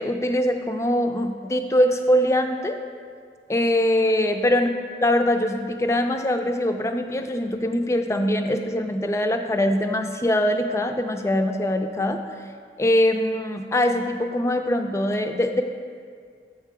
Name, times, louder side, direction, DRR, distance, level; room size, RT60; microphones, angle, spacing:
voice 1, 0.0-2.8 3.5-4.7 5.0-12.2 12.8-15.6, left 1 dB, 15° left, 6 dB, 0.3 m, -22 dB
7.4 x 4.6 x 4.8 m, 2.1 s
head